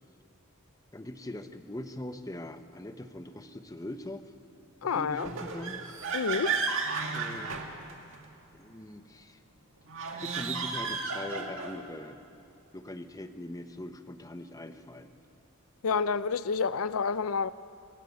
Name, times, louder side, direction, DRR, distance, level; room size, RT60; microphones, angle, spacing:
voice 1, 0.9-4.3 4.8-5.8 7.1-7.6 8.5-9.4 10.1-12.2 12.7-15.1, left 1 dB, 15° left, 0.9 m, -42 dB
voice 2, 4.8-5.3 6.1-6.5 15.8-17.5, left 5 dB, 80° left, 0.5 m, -29 dB
sound 1, 5.1-8.3 9.9-11.9, right 4 dB, 65° right, 2.0 m, -33 dB
26.5 x 15.0 x 8.3 m
head